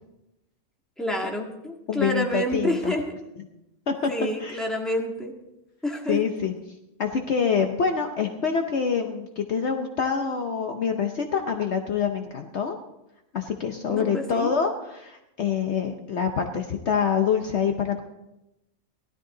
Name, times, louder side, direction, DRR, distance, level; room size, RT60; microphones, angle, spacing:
voice 1, 1.0-3.1 4.1-5.3 5.8-6.2 13.9-14.5, equal, ahead, 0 dB, 1.6 m, -28 dB
voice 2, 1.9-2.9 3.9-4.1 4.4-4.6 6.1-6.5 7.0-12.8 13.3-18.0, left 6 dB, 55° left, 4 dB, 1.0 m, -26 dB
16.5 x 13.0 x 3.9 m, 0.93 s
omnidirectional pair, 1.5 m